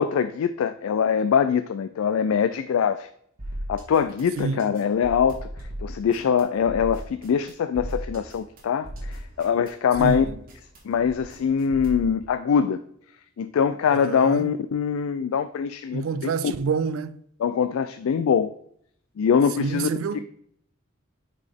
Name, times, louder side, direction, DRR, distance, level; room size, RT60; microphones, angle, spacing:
voice 1, 0.0-3.1 3.7-5.5 5.8-10.2 10.9-12.8 13.4-16.5 17.4-18.5 19.2-19.9, left 7 dB, 80° left, 0.3 m, -23 dB
sound 1, 3.4-12.1, equal, 45° right, 1.8 m, -37 dB
voice 2, 4.4-4.7 10.0-10.3 13.9-14.5 15.9-17.2 19.6-20.2, right 5 dB, 75° right, 0.4 m, -28 dB
8.3 x 4.1 x 3.4 m
head